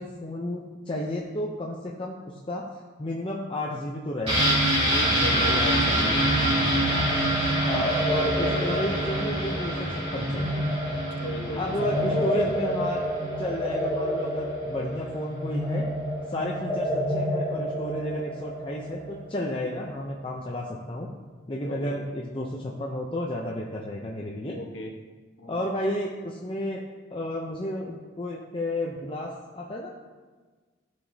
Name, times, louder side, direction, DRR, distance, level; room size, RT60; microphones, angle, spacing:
voice 1, 0.0-2.6 3.0-4.6 4.9-6.2 7.6-10.7 11.6-13.0 13.4-15.9 16.3-21.1 21.5-24.6 25.5-26.8 27.1-29.9, left 1 dB, 25° left, -2 dB, 0.6 m, -32 dB
sound 1, 4.3-13.9 14.2-14.3, right 1 dB, 30° right, 2.3 m, -26 dB
voice 2, 5.2-6.8 11.2-12.5 21.6-22.0 24.5-25.0 25.4-25.6, equal, 70° left, 1 dB, 1.1 m, -36 dB
sound 2, 6.5-20.0, equal, ahead, 1.0 m, -30 dB
13.5 x 4.9 x 2.8 m, 1.4 s
head